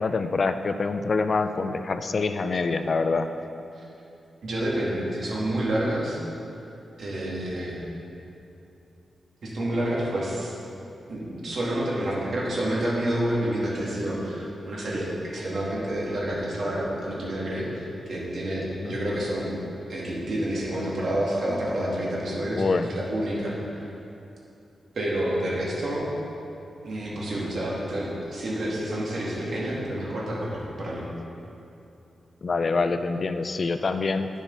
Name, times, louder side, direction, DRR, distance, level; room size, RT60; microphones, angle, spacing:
voice 1, 0.0-3.3 18.8-19.0 22.5-22.9 32.4-34.3, left 4 dB, 40° left, 9 dB, 0.4 m, -25 dB
voice 2, 4.4-6.2 7.0-7.8 9.4-10.5 11.1-19.5 19.9-23.9 24.9-26.0 26.8-31.0, right 1 dB, 55° right, -6 dB, 2.4 m, -29 dB
9.8 x 7.2 x 5.7 m, 2.8 s
wide cardioid pair, 170°, 0 cm